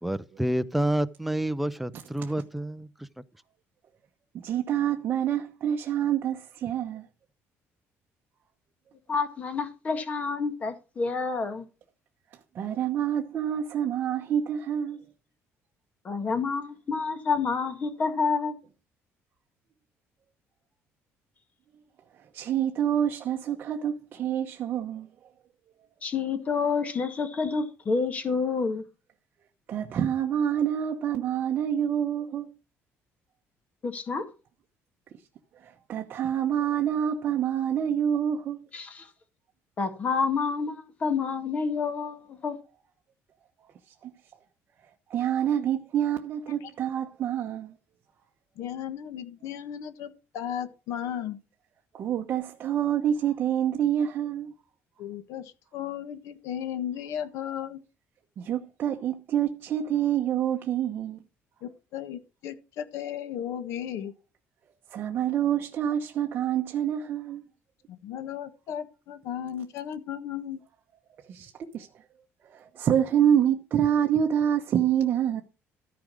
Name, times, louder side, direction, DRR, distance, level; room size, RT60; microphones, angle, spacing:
voice 1, 0.0-3.1, right 1 dB, ahead, 0.5 m, -28 dB
voice 2, 4.3-7.1 12.5-15.0 22.3-25.1 29.7-32.6 35.6-38.7 44.0-44.1 45.1-47.7 51.9-54.5 58.4-61.2 64.9-67.5 71.3-71.9 72.4-75.4, right 9 dB, 40° right, 1.0 m, -27 dB
voice 3, 9.1-11.6 16.0-18.5 26.0-28.8 33.8-34.2 38.7-39.1 39.8-42.5, left 5 dB, 25° left, 1.8 m, -28 dB
voice 4, 48.6-51.4 55.0-57.8 61.6-64.1 67.9-70.6, left 9 dB, 70° left, 1.4 m, -35 dB
14.0 x 5.1 x 6.3 m
cardioid pair, 175°, 5 cm